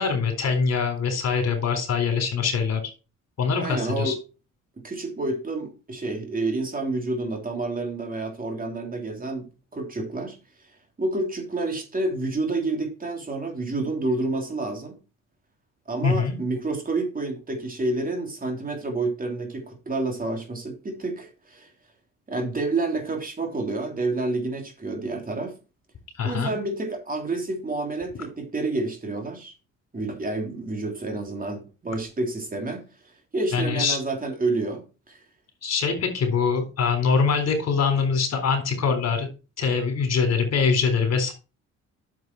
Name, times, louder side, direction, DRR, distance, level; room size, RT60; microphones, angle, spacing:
voice 1, 0.0-2.8 3.4-4.1 16.0-16.4 26.2-26.5 33.5-34.0 35.6-39.3 39.6-41.3, left 5 dB, 55° left, 3.9 m, -23 dB
voice 2, 3.6-4.2 4.8-10.4 11.0-15.0 15.9-21.7 22.3-25.5 26.2-29.5 29.9-32.8 33.3-35.2, right 2 dB, 30° right, 3.4 m, -29 dB
9.3 x 7.3 x 4.6 m
cardioid pair, 90°, 30 cm